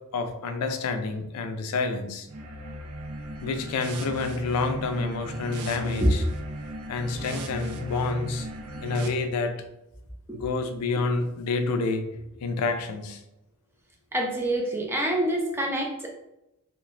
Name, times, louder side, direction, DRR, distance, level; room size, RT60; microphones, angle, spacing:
voice 1, 0.1-2.3 3.4-6.2 6.9-8.5 8.8-9.6 10.3-12.0 12.4-13.2, left 3 dB, 85° left, 7 dB, 0.4 m, -28 dB
sound 1, 2.3-9.1, right 1 dB, 90° right, 0.4 m, -37 dB
voice 2, 14.1-16.1, right 1 dB, 10° right, -1 dB, 0.4 m, -25 dB
3.1 x 2.1 x 2.4 m, 0.89 s
head